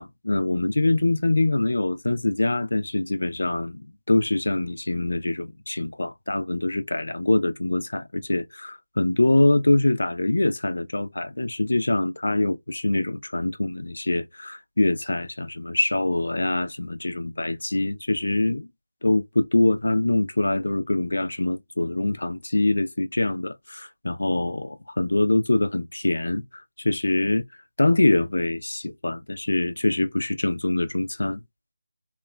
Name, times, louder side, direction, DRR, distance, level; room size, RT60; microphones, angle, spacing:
voice 1, 0.0-18.7 19.0-26.4 26.8-27.4 27.8-31.4, left 2 dB, 70° left, 0.5 m, -24 dB
2.9 x 2.2 x 2.2 m
figure-of-eight pair, 165°, 0 cm